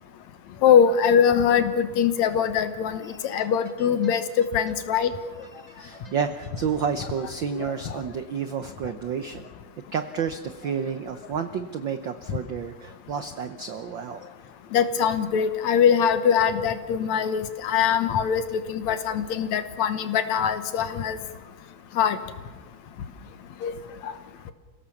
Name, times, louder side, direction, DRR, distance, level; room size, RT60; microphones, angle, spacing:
voice 1, 0.6-5.1 7.5-7.7 14.7-21.2 22.0-22.2 23.6-23.7 24.0-24.1, left 8 dB, 70° left, 10 dB, 2.4 m, -22 dB
voice 2, 3.0-3.9 4.7-4.8 5.0-9.5 9.9-14.3, right 7 dB, 85° right, 9 dB, 1.0 m, -31 dB
29.0 x 17.0 x 7.1 m, 1.4 s
omnidirectional pair, 3.4 m